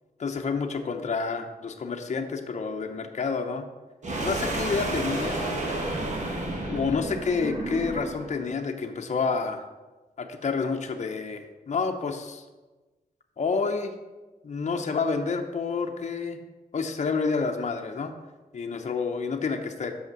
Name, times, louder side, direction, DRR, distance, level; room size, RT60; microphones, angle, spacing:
voice 1, 0.2-3.7 4.2-5.4 6.7-9.6 10.2-12.4 13.4-13.9 14.4-16.4 16.7-18.1 18.5-19.9, left 4 dB, 45° left, 4 dB, 0.8 m, -29 dB
sound 1, 4.0-8.3, right 2 dB, 50° right, 1.4 m, -31 dB
6.5 x 5.5 x 6.0 m, 1.2 s
cardioid pair, 85°, 16 cm